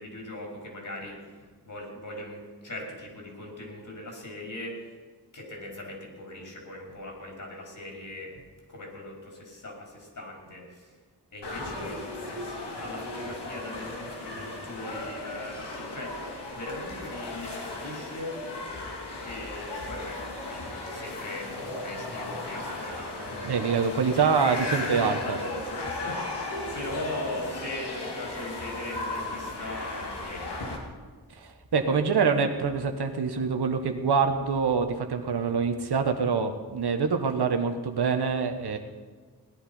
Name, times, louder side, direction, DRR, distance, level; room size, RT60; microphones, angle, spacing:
voice 1, 0.0-4.9 5.3-8.3 8.7-11.0 11.3-16.2 16.5-18.4 19.2-23.5 24.1-24.3 24.8-26.2 26.7-30.7, left 1 dB, 50° left, -1 dB, 5.0 m, -39 dB
sound 1, 11.4-30.8, left 2 dB, 90° left, 2.5 m, -36 dB
voice 2, 23.4-25.4 31.3-38.8, right 5 dB, 75° right, 6 dB, 1.5 m, -25 dB
18.0 x 10.5 x 5.5 m, 1.5 s
wide cardioid pair, 80°, 39 cm